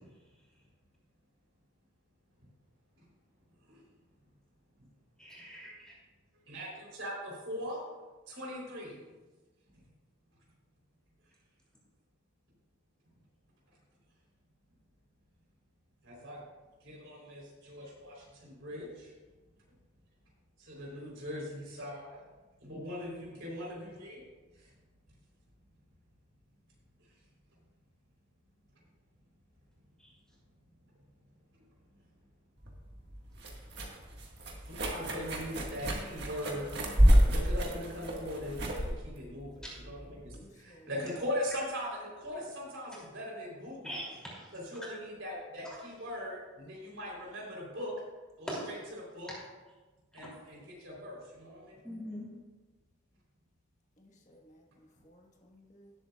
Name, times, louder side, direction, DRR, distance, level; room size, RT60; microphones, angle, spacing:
voice 1, 5.2-5.9 40.9-41.0 43.8-44.5 48.5-48.7 51.8-52.3, equal, 5° left, -5 dB, 2.7 m, -41 dB
voice 2, 6.5-7.8 8.3-9.0 16.0-16.4 16.8-19.1 20.6-22.2 22.6-24.2 24.6-24.7 34.6-44.0 44.5-47.9 48.4-48.8 49.1-49.3 50.1-51.8, equal, 70° right, -3 dB, 3.6 m, -40 dB
sound 1, 32.6-40.4, equal, 50° right, 1.6 m, -29 dB
voice 3, 40.3-40.9 54.0-55.9, equal, 35° left, 1 dB, 1.3 m, -59 dB
18.0 x 7.7 x 2.4 m, 1.2 s
head